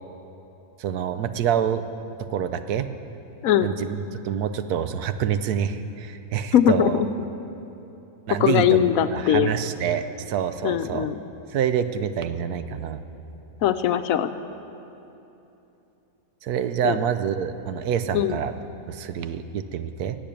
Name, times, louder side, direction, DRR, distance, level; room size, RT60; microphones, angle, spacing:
voice 1, 0.8-1.8 2.3-2.9 3.6-7.0 8.3-8.8 9.1-11.1 11.5-13.0 16.4-18.5 18.9-20.2, right 8 dB, 80° right, 11 dB, 1.2 m, -26 dB
voice 2, 6.5-7.1 8.4-9.5 10.6-11.2 13.6-14.3 16.8-17.0 18.1-18.4, left 10 dB, 70° left, 10 dB, 0.9 m, -20 dB
17.0 x 7.6 x 8.8 m, 2.9 s
omnidirectional pair, 1.6 m